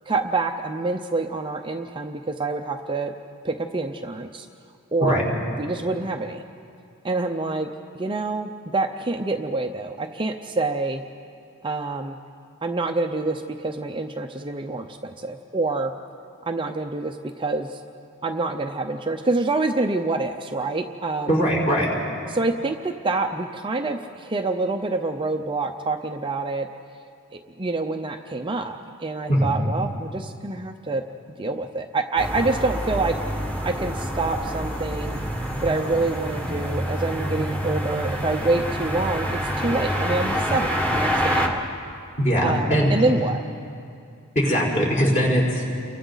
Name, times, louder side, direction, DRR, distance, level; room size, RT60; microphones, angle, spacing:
voice 1, 0.1-3.1 3.4-4.5 4.9-5.2 5.6-6.4 7.0-7.7 7.9-11.0 11.6-12.2 12.6-15.9 16.4-17.8 18.2-21.4 22.3-26.7 27.3-31.0 31.4-33.2 33.6-35.2 35.6-41.7 42.4-43.4, right 3 dB, 25° right, 4 dB, 0.7 m, -26 dB
voice 2, 21.3-21.9 29.3-29.5 42.2-43.1 44.3-45.7, equal, 35° left, -3 dB, 4.5 m, -20 dB
sound 1, 32.2-41.5, equal, 5° left, 1.7 m, -27 dB
29.5 x 23.5 x 4.0 m, 2.5 s
head